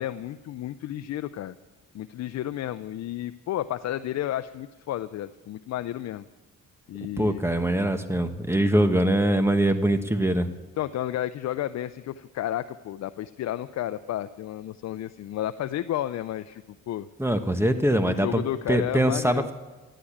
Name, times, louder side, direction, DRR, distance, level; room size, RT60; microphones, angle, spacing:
voice 1, 0.0-1.5 1.9-6.3 6.9-7.4 10.8-17.1 18.1-19.5, left 12 dB, 65° left, 11 dB, 0.6 m, -32 dB
voice 2, 7.2-10.5 17.2-18.4 18.7-19.5, right 1 dB, 10° right, 8 dB, 1.2 m, -23 dB
15.5 x 10.0 x 8.6 m, 1.3 s
cardioid pair, 90°, 30 cm